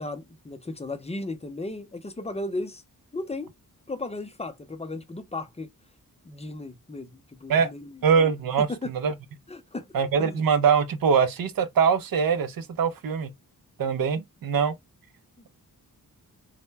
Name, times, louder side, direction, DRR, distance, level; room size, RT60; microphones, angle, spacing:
voice 1, 0.0-2.8 3.1-3.5 3.9-5.7 6.3-7.9 8.7-8.9 9.5-9.9 10.2-10.4 15.4-15.5, left 2 dB, 20° left, 0.4 m, -35 dB
voice 2, 8.0-9.1 9.9-13.3 13.8-14.7, right 6 dB, 70° right, 0.5 m, -23 dB
2.1 x 2.1 x 3.2 m
wide cardioid pair, 85°, 36 cm